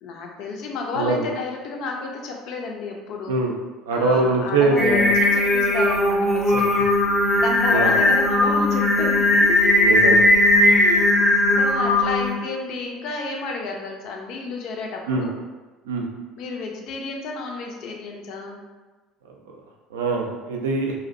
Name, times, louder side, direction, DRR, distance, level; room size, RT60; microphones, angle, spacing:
voice 1, 0.0-3.4 3.9-6.7 7.4-9.9 10.6-11.1 11.6-15.3 16.4-18.6, left 4 dB, 55° left, 1 dB, 0.4 m, -31 dB
voice 2, 3.9-5.1 6.5-6.6 7.7-7.9 9.8-10.2 15.1-15.2 15.9-16.1 19.9-20.9, right 3 dB, 70° right, 0 dB, 0.3 m, -22 dB
Singing, 4.8-12.3, left 1 dB, 5° right, 0.6 m, -18 dB
2.4 x 2.1 x 2.4 m, 1.2 s
figure-of-eight pair, 60°, 0 cm